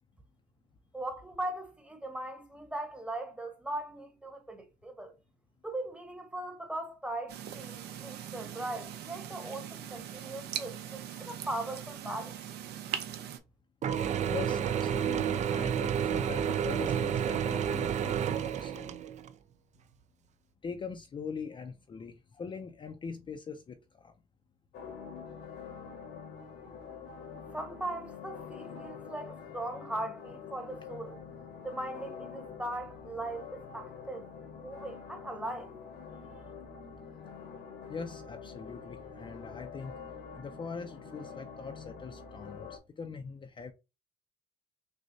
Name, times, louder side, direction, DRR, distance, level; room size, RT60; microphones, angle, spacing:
voice 1, 0.9-5.1 5.6-12.4 27.5-31.2 31.6-34.3 34.6-35.7, right 1 dB, 5° right, 1.0 m, -39 dB
sound 1, 7.3-13.4, right 10 dB, 80° right, 0.7 m, -41 dB
Mechanisms / Drill, 13.8-19.3, right 8 dB, 45° right, 0.4 m, -30 dB
voice 2, 14.3-19.0 20.6-24.1 37.9-39.9 40.4-43.7, left 5 dB, 30° left, 0.5 m, -42 dB
sound 2, 24.7-42.8, left 6 dB, 80° left, 1.3 m, -46 dB
6.3 x 2.2 x 2.6 m
cardioid pair, 110°, 17 cm